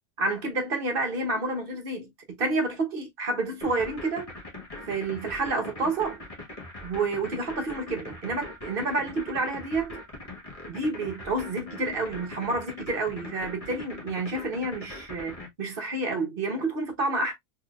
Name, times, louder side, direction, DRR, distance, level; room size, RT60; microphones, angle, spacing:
voice 1, 0.2-2.1 2.4-4.3 4.9-6.2 6.8-10.0 10.7-17.3, right 2 dB, 40° right, 1.0 m, -29 dB
sound 1, 3.6-15.5, left 2 dB, 25° left, 1.2 m, -41 dB
4.1 x 3.4 x 2.3 m
omnidirectional pair, 1.6 m